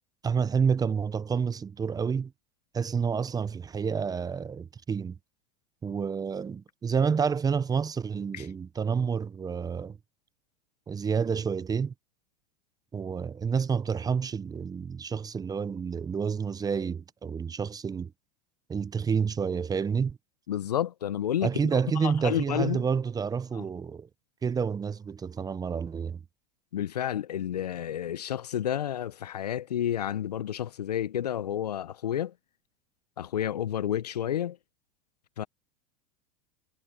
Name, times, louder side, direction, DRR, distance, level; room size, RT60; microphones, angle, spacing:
voice 1, 0.2-2.3 2.7-5.2 5.8-10.0 10.9-11.9 12.9-18.1 18.7-20.2 21.4-24.1 24.4-26.2, right 6 dB, 20° right, 0.9 m, -29 dB
voice 2, 20.5-21.5 22.0-22.8 23.5-23.6 26.7-32.3 33.2-34.6 35.4-35.5, left 10 dB, 80° left, 1.1 m, -30 dB
hypercardioid pair, 95°, 20 cm